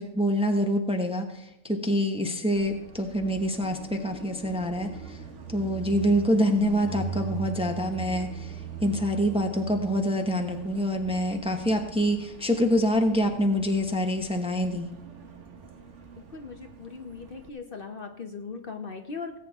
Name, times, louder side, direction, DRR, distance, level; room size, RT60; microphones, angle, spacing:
voice 1, 0.0-5.2 5.5-14.9, equal, 5° right, 4 dB, 0.9 m, -26 dB
Car passing by, 2.6-17.5, right 6 dB, 65° right, 1.5 m, -41 dB
voice 2, 16.3-19.3, left 5 dB, 50° left, 5 dB, 1.0 m, -39 dB
18.0 x 8.4 x 3.6 m, 0.86 s
omnidirectional pair, 1.3 m